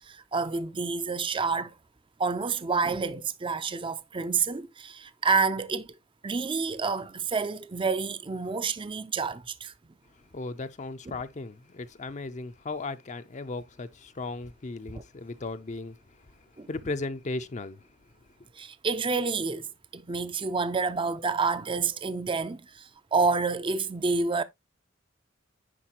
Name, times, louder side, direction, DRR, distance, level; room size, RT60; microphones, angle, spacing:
voice 1, 0.1-1.7 2.2-5.9 6.2-9.7 14.9-15.0 16.6-16.7 18.5-19.7 19.9-24.4, right 4 dB, 25° right, 0.5 m, -28 dB
voice 2, 10.3-16.0 16.4-17.8, left 3 dB, 40° left, 0.6 m, -36 dB
10.0 x 4.6 x 2.9 m
head